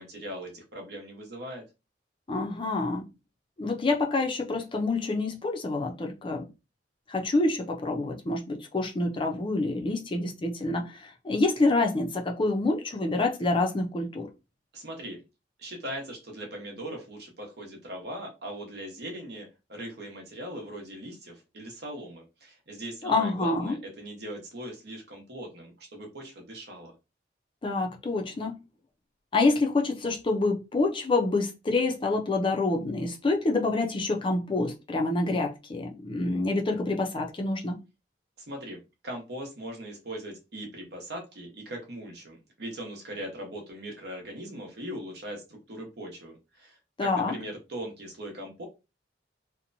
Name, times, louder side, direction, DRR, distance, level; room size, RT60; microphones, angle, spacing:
voice 1, 0.0-1.6 14.7-15.2 15.6-26.9 38.4-48.7, right 1 dB, 65° right, 0.9 m, -40 dB
voice 2, 2.3-3.1 3.6-6.5 7.1-14.3 23.0-23.8 27.6-28.6 29.3-37.8 47.0-47.3, left 2 dB, 30° left, 0.4 m, -27 dB
2.8 x 2.1 x 2.6 m
head